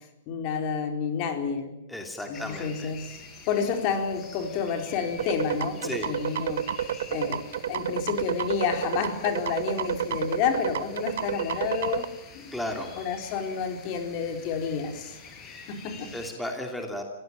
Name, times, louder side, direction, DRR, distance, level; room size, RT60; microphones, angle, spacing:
voice 1, 0.3-1.8 2.3-3.2 3.5-12.1 12.3-12.5 13.0-15.2 15.7-16.1, left 6 dB, 45° left, 5 dB, 4.2 m, -30 dB
voice 2, 1.9-2.9 5.8-6.1 12.5-12.9 16.1-17.0, left 1 dB, 5° left, 2 dB, 2.8 m, -34 dB
sound 1, 2.3-16.3, left 5 dB, 25° left, 5.4 m, -47 dB
sound 2, 5.2-12.0, right 10 dB, 75° right, 1.2 m, -30 dB
26.0 x 16.5 x 9.0 m, 0.86 s
hypercardioid pair, 140°, 0 cm